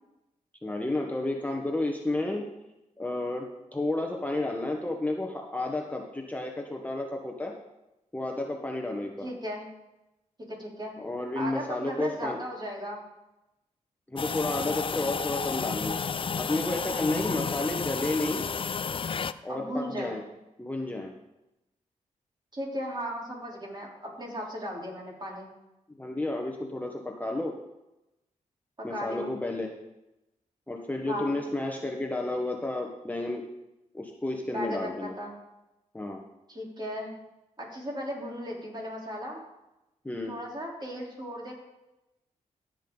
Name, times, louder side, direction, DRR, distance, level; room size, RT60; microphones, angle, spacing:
voice 1, 0.6-2.5 3.0-3.5 3.7-7.5 8.1-9.3 11.0-12.4 14.1-16.0 16.4-18.4 19.4-20.2 20.6-21.1 26.0-27.5 28.8-29.7 30.7-33.4 33.9-35.1 35.9-36.2 40.0-40.4, left 2 dB, 10° left, 1 dB, 1.3 m, -31 dB
voice 2, 9.2-9.7 10.5-10.9 11.4-13.0 17.3-17.6 19.5-20.2 22.5-25.5 28.8-29.4 31.1-31.4 34.5-35.4 36.5-37.1 37.6-39.4 40.3-41.5, equal, 30° right, -3 dB, 3.8 m, -36 dB
sound 1, 14.2-19.3, left 6 dB, 40° left, 0.5 m, -31 dB
14.5 x 7.7 x 4.0 m, 0.95 s
cardioid pair, 65°, 14 cm